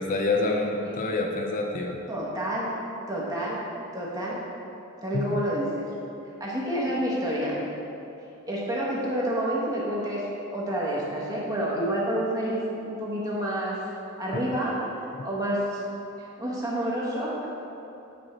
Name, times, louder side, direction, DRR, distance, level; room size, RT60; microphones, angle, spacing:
voice 1, 0.0-2.0 5.1-5.4 14.3-14.4, left 2 dB, 40° left, 2 dB, 0.4 m, -27 dB
voice 2, 2.1-2.7 3.1-3.6 3.9-4.4 5.0-5.9 6.4-7.6 8.5-10.2 10.5-13.8 14.2-14.8 15.2-15.8 16.4-17.5, right 1 dB, 20° right, -5 dB, 1.2 m, -28 dB
8.7 x 4.6 x 4.3 m, 2.9 s
head